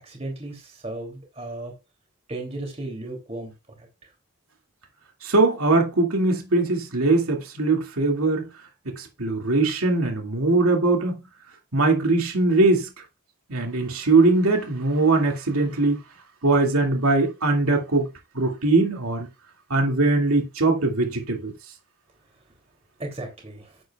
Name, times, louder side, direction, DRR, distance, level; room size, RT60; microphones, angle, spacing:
voice 1, 0.0-1.7 2.3-3.5 3.8-4.1 23.0-23.8, right 2 dB, 30° right, 3.0 m, -35 dB
voice 2, 5.2-8.5 8.8-11.2 11.7-12.9 13.5-16.0 16.4-18.1 18.3-19.3 19.7-21.5, right 3 dB, 85° right, 2.4 m, -21 dB
11.0 x 8.1 x 2.4 m
head